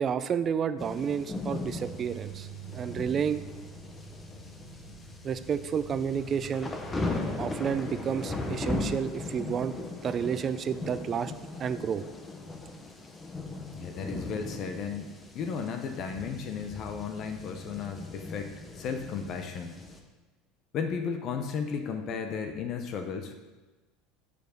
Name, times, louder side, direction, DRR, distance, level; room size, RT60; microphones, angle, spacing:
voice 1, 0.0-2.5 2.7-3.4 5.2-6.7 7.4-9.8 10.0-11.3 11.6-12.0, right 7 dB, 35° right, 13 dB, 0.4 m, -30 dB
sound 1, 0.8-20.0, left 2 dB, 15° left, 0.9 m, -38 dB
sound 2, 1.6-8.5, right 4 dB, 75° right, 1.5 m, -46 dB
voice 2, 13.7-15.1 15.3-19.7 20.7-23.3, left 6 dB, 45° left, 6 dB, 0.8 m, -34 dB
7.0 x 5.0 x 6.5 m, 1.2 s
supercardioid pair, 125°, 0 cm